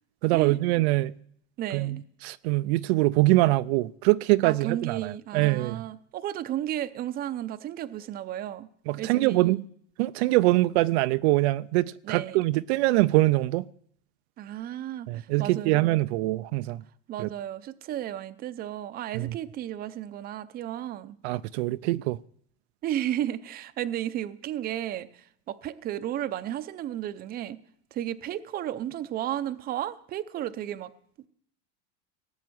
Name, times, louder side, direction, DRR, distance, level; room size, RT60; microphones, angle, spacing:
voice 1, 0.2-1.1 1.7-2.0 2.2-5.8 8.9-9.6 10.0-13.6 15.1-16.8 17.2-17.3 19.1-19.3 21.2-22.2, right 19 dB, 70° right, 0.5 m, -23 dB
voice 2, 1.6-2.0 4.4-8.7 9.0-9.6 12.0-12.4 14.4-16.0 17.1-21.2 22.8-27.6 27.9-30.9, right 12 dB, 25° right, 0.6 m, -33 dB
18.5 x 7.2 x 9.4 m
supercardioid pair, 155°, 34 cm